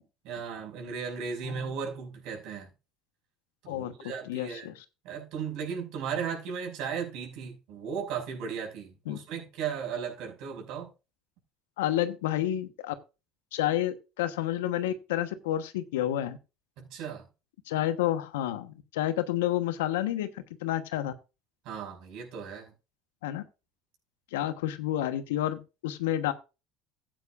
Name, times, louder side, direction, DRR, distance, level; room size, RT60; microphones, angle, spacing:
voice 1, 0.2-2.7 3.6-4.7 5.0-10.9 16.8-17.2 21.6-22.7, right 6 dB, 65° right, 5.9 m, -36 dB
voice 2, 4.3-4.8 9.1-9.2 11.8-12.9 13.5-16.4 17.7-21.1 23.2-23.4 24.3-26.3, left 12 dB, 85° left, 1.1 m, -30 dB
15.0 x 9.1 x 2.5 m
hypercardioid pair, 80°, 0 cm